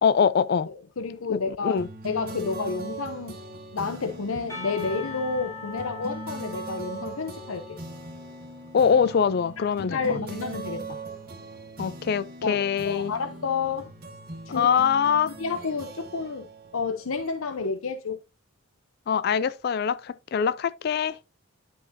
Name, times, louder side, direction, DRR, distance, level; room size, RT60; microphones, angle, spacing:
voice 1, 0.0-0.7 1.3-1.9 8.7-10.2 11.8-13.1 14.5-15.3 19.1-21.2, left 7 dB, 50° left, 0.3 m, -23 dB
voice 2, 0.7-3.4 3.7-7.6 9.9-11.0 12.4-13.9 14.5-14.7 15.4-16.5 16.7-18.2, left 4 dB, 80° left, 0.7 m, -30 dB
sound 1, 1.8-17.6, right 2 dB, 45° right, 1.7 m, -40 dB
Percussion, 4.5-9.3, left 3 dB, 15° left, 4.2 m, -41 dB
10.5 x 5.3 x 2.7 m
head